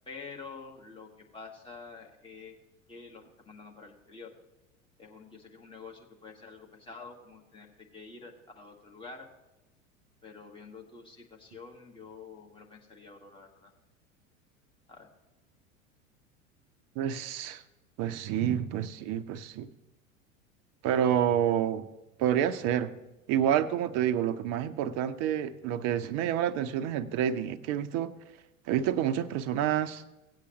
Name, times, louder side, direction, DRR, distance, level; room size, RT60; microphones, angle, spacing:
voice 1, 0.1-2.6 2.9-4.3 5.0-9.3 10.2-13.7 14.9-15.1, left 4 dB, 10° left, 0 dB, 1.8 m, -48 dB
voice 2, 17.0-17.6 18.0-19.7 20.8-21.9 22.2-22.9 23.3-28.1 28.7-30.0, right 10 dB, 40° right, 13 dB, 0.7 m, -28 dB
17.5 x 8.3 x 3.0 m, 0.98 s
figure-of-eight pair, 80°, 41 cm